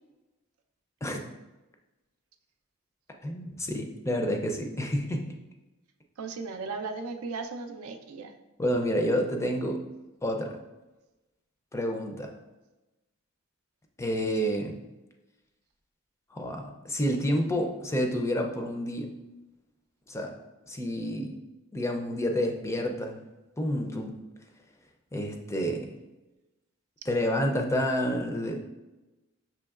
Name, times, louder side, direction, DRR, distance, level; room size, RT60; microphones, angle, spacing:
voice 1, 3.2-5.3 8.6-9.8 10.2-10.6 11.7-12.3 14.0-14.8 16.3-19.1 20.1-20.3 20.6-21.4 21.7-23.2 23.6-24.1 25.1-25.9 27.1-28.6, equal, 15° left, 3 dB, 0.4 m, -29 dB
voice 2, 6.2-8.3, right 4 dB, 80° right, 6 dB, 0.4 m, -36 dB
6.1 x 2.9 x 2.3 m, 1.1 s
head